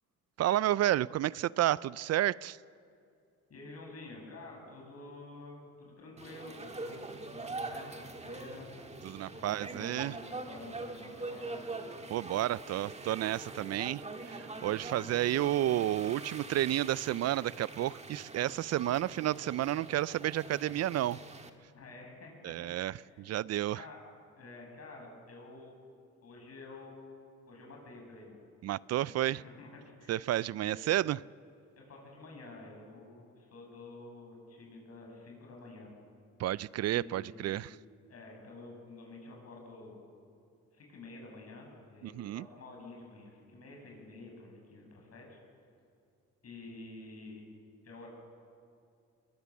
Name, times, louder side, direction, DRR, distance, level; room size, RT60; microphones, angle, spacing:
voice 1, 0.4-2.6 9.0-10.2 12.1-21.2 22.4-23.8 28.6-29.4 30.1-31.2 36.4-37.8 42.0-42.5, right 13 dB, 60° right, 22 dB, 0.4 m, -31 dB
voice 2, 3.5-8.7 9.2-11.7 21.7-23.2 23.7-24.0 24.3-25.7 26.2-27.2 27.5-28.4 28.9-30.3 30.6-30.8 31.8-35.9 36.9-37.7 38.1-40.0 40.7-45.4 46.4-47.4 47.8-48.1, left 2 dB, 55° left, 0 dB, 6.8 m, -50 dB
sound 1, 6.2-21.5, right 3 dB, 20° right, 1.7 m, -44 dB
21.5 x 20.5 x 7.3 m, 2.4 s
cardioid pair, 90°, 30 cm